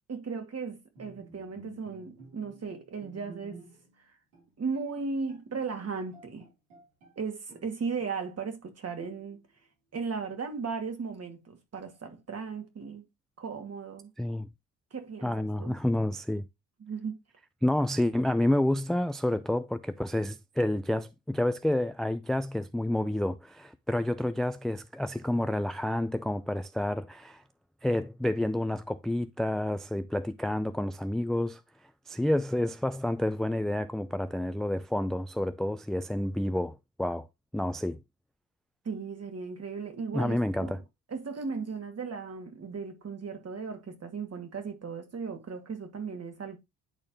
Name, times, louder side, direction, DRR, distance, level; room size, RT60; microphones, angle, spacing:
voice 1, 0.1-3.6 4.0-4.1 4.6-6.5 7.2-9.4 9.9-13.0 13.4-14.1 14.9-15.8 16.8-17.2 38.8-40.8 41.1-46.6, right 5 dB, 40° right, 2.4 m, -36 dB
Bowed string instrument, 1.0-4.0 4.3-4.5 5.0-5.1 5.3-7.2 7.5-8.3 9.0-9.6, right 2 dB, 80° right, 3.4 m, -52 dB
voice 2, 14.2-14.5 15.2-16.5 17.6-27.4 27.8-31.6 32.1-37.3 37.5-38.0 40.1-40.8, left 1 dB, ahead, 0.4 m, -29 dB
10.5 x 4.3 x 3.0 m
hypercardioid pair, 50°, 37 cm